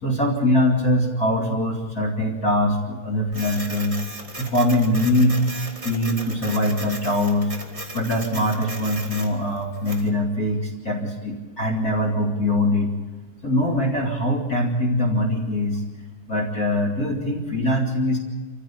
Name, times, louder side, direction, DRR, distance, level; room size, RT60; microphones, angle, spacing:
voice 1, 0.0-4.0 4.4-5.4 5.8-7.5 7.9-12.9 13.4-15.8 16.3-18.2, left 1 dB, 30° left, 0 dB, 2.1 m, -22 dB
Printer, 3.3-10.1, right 2 dB, 20° right, 0.8 m, -36 dB
26.5 x 15.0 x 8.7 m, 1.3 s
omnidirectional pair, 5.2 m